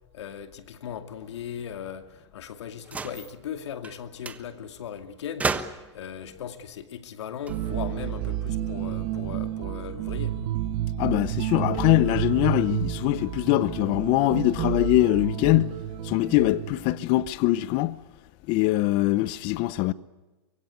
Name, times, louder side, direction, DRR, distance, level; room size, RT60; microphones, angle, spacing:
voice 1, 0.1-5.5 5.9-10.4, left 8 dB, 75° left, 2.4 m, -38 dB
sound 1, 2.8-3.3 3.8-4.0 4.2-4.4 5.4-6.0 7.3-8.3, right 4 dB, 10° right, 1.1 m, -32 dB
sound 2, 7.5-17.1, right 12 dB, 45° right, 2.0 m, -30 dB
voice 2, 11.0-15.7 16.0-18.0 18.5-19.9, left 17 dB, 35° left, 0.9 m, -23 dB
24.5 x 22.5 x 8.3 m
hypercardioid pair, 145°, 15 cm